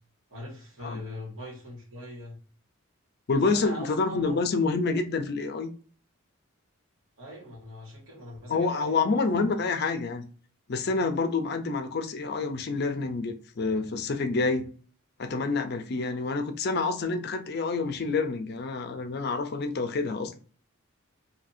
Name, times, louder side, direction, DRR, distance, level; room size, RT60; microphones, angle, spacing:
voice 1, 0.3-2.4 3.3-4.4 7.2-9.2 16.0-16.3, left 1 dB, 70° right, 1.7 m, -41 dB
voice 2, 3.3-5.7 8.5-10.2 10.7-14.7 15.2-20.4, left 4 dB, 50° left, 0.5 m, -28 dB
2.7 x 2.6 x 4.2 m
head